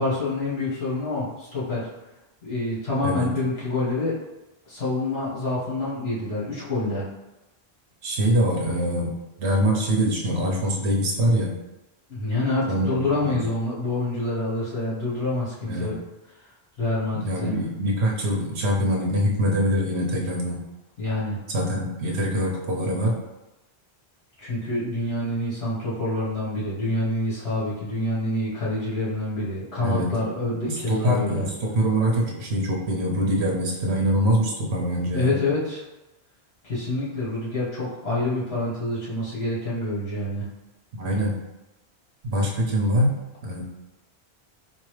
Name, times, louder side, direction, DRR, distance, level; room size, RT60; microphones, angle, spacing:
voice 1, 0.0-1.8 2.4-4.1 4.6-7.0 12.1-16.0 16.8-17.5 21.0-21.4 24.4-31.5 35.1-35.8 36.6-40.4, left 2 dB, 70° left, -8 dB, 1.7 m, -27 dB
voice 2, 8.0-9.1 9.4-11.5 12.7-13.1 13.3-13.4 15.6-16.0 17.2-20.6 21.5-23.1 29.8-30.1 30.6-35.3 40.9-41.3 42.2-43.2 43.4-43.6, equal, 80° right, -1 dB, 1.0 m, -24 dB
4.0 x 2.7 x 3.2 m, 1.0 s
omnidirectional pair, 1.1 m